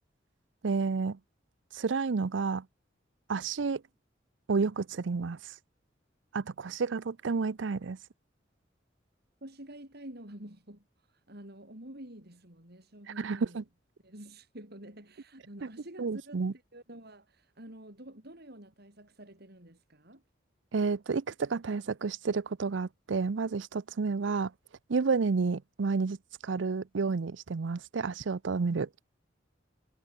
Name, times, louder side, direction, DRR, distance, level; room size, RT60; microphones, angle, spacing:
voice 1, 0.6-1.2 1.7-2.6 3.3-3.8 4.5-5.5 6.3-8.0 13.2-13.6 16.0-16.5 20.7-24.5 24.9-26.2 26.4-28.9, right 4 dB, 75° right, 0.6 m, -30 dB
voice 2, 9.4-13.6 14.0-20.2, right 1 dB, 60° right, 7.5 m, -49 dB
head